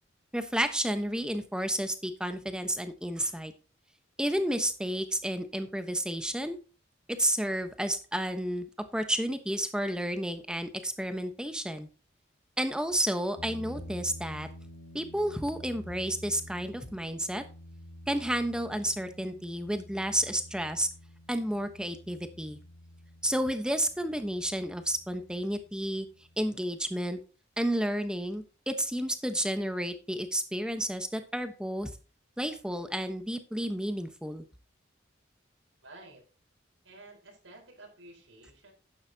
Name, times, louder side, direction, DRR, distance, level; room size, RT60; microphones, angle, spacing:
voice 1, 0.3-3.5 4.2-6.6 7.2-11.9 12.6-14.5 14.9-17.4 18.1-20.9 21.3-22.6 23.2-26.1 26.4-27.2 27.6-31.9 32.4-34.4, right 1 dB, 5° right, 8 dB, 1.1 m, -31 dB
sound 1, 13.4-26.5, left 1 dB, 80° left, 3.2 m, -49 dB
voice 2, 35.8-36.2 36.8-38.7, right 2 dB, 90° right, 1 dB, 4.6 m, -51 dB
11.5 x 9.6 x 2.9 m, 0.35 s
head